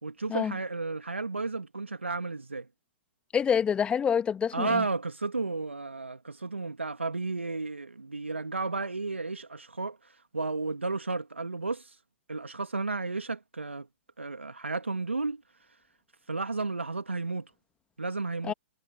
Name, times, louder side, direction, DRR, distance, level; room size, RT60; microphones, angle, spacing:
voice 1, 0.0-2.7 4.5-10.0 10.3-11.9 12.3-13.9 14.2-15.4 16.3-17.5 18.0-18.5, right 3 dB, 90° right, 2.2 m, -33 dB
voice 2, 3.3-4.8 18.4-18.5, left 7 dB, 15° left, 2.0 m, -27 dB
figure-of-eight pair, 115°, 6 cm